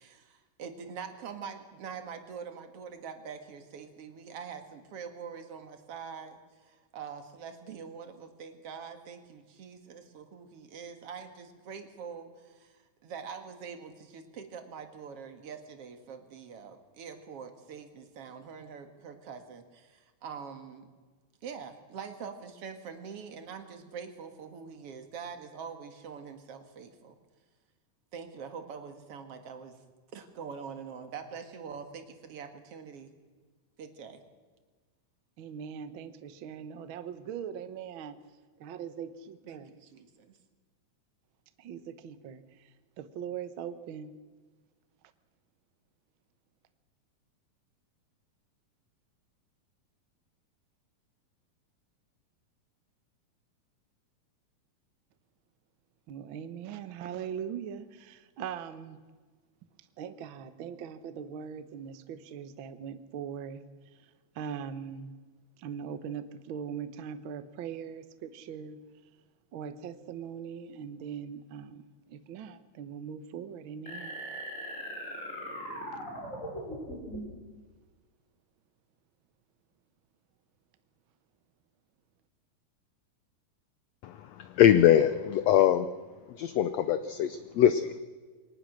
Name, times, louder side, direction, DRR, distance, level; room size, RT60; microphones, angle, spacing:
voice 1, 0.0-20.9 21.4-27.2 28.1-29.8 30.1-33.1 33.8-34.2 39.5-40.4, right 6 dB, 50° right, 7 dB, 2.3 m, -44 dB
voice 2, 35.4-38.2 38.6-39.7 41.6-42.7 43.0-44.1 56.1-59.0 60.0-63.6 63.9-65.1 65.6-68.8 69.5-74.2, right 8 dB, 85° right, 11 dB, 1.1 m, -41 dB
sound 1, 73.9-77.4, equal, 20° left, 5.6 m, -39 dB
voice 3, 84.0-85.9 86.3-88.0, left 10 dB, 85° left, 11 dB, 1.5 m, -23 dB
22.5 x 19.0 x 6.5 m, 1.4 s
omnidirectional pair, 3.9 m